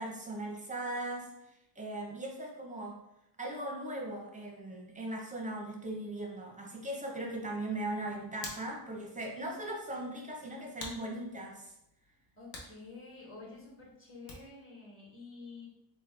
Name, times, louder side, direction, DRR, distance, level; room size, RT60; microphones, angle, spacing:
voice 1, 0.0-1.3 1.8-3.0 3.4-11.7, right 1 dB, 15° right, 1 dB, 0.6 m, -39 dB
Hands, 7.8-14.7, left 2 dB, 60° left, 0.9 m, -51 dB
voice 2, 12.4-15.7, left 3 dB, 25° left, -4 dB, 1.2 m, -49 dB
3.3 x 2.2 x 3.1 m, 0.82 s
cardioid pair, 105°, 48 cm